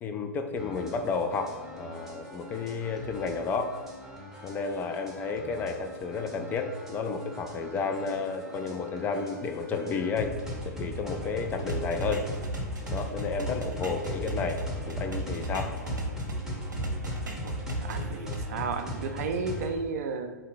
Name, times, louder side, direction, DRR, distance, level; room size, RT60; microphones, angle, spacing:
voice 1, 0.0-3.8 4.4-10.3 10.6-12.3 12.9-15.7, left 4 dB, 20° left, 5 dB, 0.3 m, -32 dB
sound 1, 0.6-19.8, left 1 dB, 5° right, 0.8 m, -39 dB
sound 2, 11.7-16.4 16.7-18.4, right 2 dB, 80° right, 0.7 m, -35 dB
voice 2, 17.4-20.3, right 4 dB, 55° right, 8 dB, 0.4 m, -33 dB
3.8 x 2.7 x 3.8 m, 1.4 s
figure-of-eight pair, 110°, 10 cm